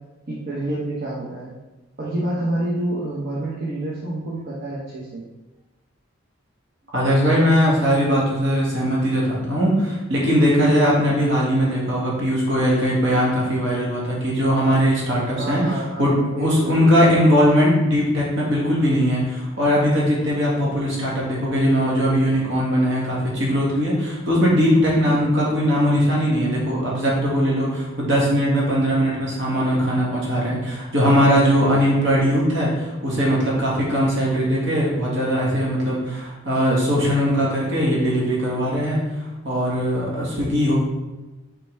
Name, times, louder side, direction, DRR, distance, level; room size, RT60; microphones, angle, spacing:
voice 1, 0.3-1.5 2.0-5.3 15.3-17.1 25.1-25.4, right 1 dB, 50° right, -6 dB, 1.1 m, -28 dB
voice 2, 6.9-15.6 16.0-39.0 39.4-40.7, equal, 65° right, -5 dB, 2.0 m, -20 dB
5.8 x 4.7 x 3.5 m, 1.1 s
head